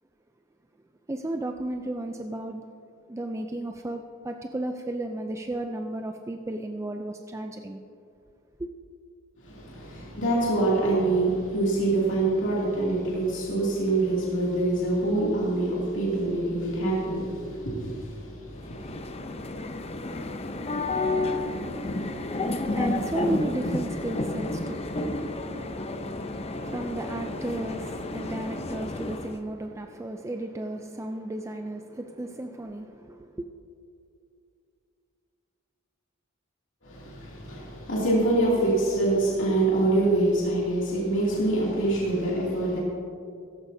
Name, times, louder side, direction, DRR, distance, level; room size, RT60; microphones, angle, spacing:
voice 1, 1.1-2.6 3.1-7.8 8.6-8.7 22.3-33.5, right 1 dB, 15° right, 0.4 m, -34 dB
voice 2, 9.4-18.9 36.8-42.8, right 2 dB, 65° left, 2.6 m, -25 dB
sound 1, 18.6-29.4, left 2 dB, 30° left, 0.6 m, -31 dB
16.0 x 14.5 x 2.7 m
head